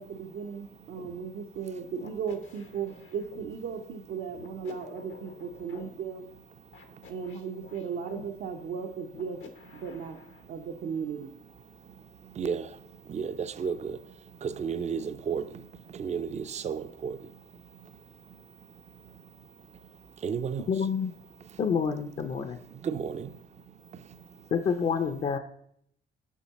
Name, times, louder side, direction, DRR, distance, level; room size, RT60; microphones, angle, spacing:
voice 1, 0.0-6.3 7.1-9.4 9.7-10.2 10.5-11.3, right 6 dB, 75° right, 0.8 m, -36 dB
sound 1, 1.0-1.1 2.0-3.5 4.4-5.9 6.7-8.3 9.1-10.4, left 6 dB, 80° left, 1.1 m, -49 dB
voice 2, 12.4-12.7 13.1-14.0 14.4-15.5 16.0-17.2 20.2-20.7 22.8-23.3, right 6 dB, 35° right, 0.4 m, -32 dB
voice 3, 20.7-21.1 21.6-22.6 24.5-25.4, left 6 dB, 40° left, 0.5 m, -28 dB
7.3 x 5.5 x 4.1 m
cardioid pair, 90°, 20 cm